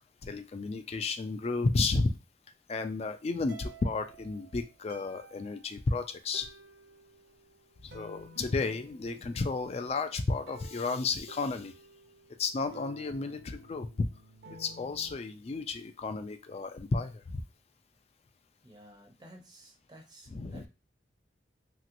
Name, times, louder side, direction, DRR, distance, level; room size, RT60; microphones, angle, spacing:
voice 1, 0.2-2.1 2.7-6.5 7.8-11.7 12.4-14.1 14.6-17.4 20.3-20.7, left 3 dB, 35° left, 8 dB, 0.3 m, -32 dB
sound 1, 3.5-15.2, right 1 dB, 70° right, 0.6 m, -53 dB
voice 2, 18.6-20.7, right 1 dB, 25° right, 3 dB, 0.6 m, -54 dB
2.9 x 2.9 x 2.5 m, 0.29 s
head